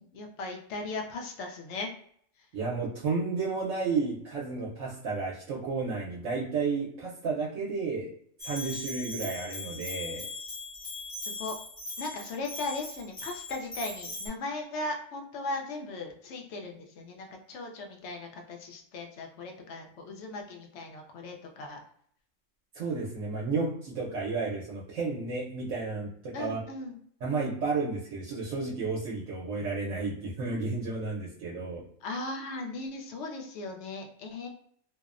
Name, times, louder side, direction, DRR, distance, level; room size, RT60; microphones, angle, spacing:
voice 1, 0.0-1.9 2.4-2.5 11.3-11.6 12.0-21.8 26.3-27.0 32.0-34.5, left 2 dB, 70° left, 3 dB, 0.8 m, -38 dB
voice 2, 2.5-8.1 8.4-10.3 22.7-26.6 27.2-31.9, right 4 dB, 75° right, -5 dB, 0.9 m, -32 dB
Bell, 8.4-14.3, left 2 dB, 35° left, 0.6 m, -39 dB
2.6 x 2.0 x 2.4 m, 0.64 s
omnidirectional pair, 1.3 m